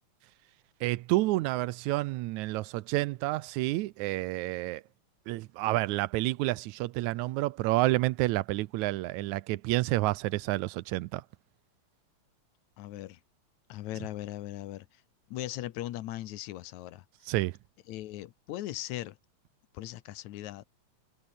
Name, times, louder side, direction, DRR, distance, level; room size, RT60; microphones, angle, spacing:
voice 1, 0.8-4.8 5.3-11.2 17.3-17.6, right 18 dB, 85° right, 2.0 m, -29 dB
voice 2, 12.8-13.2 13.7-14.9 15.3-17.3 17.9-19.2 19.7-20.7, left 14 dB, 80° left, 2.3 m, -39 dB
omnidirectional pair, 3.3 m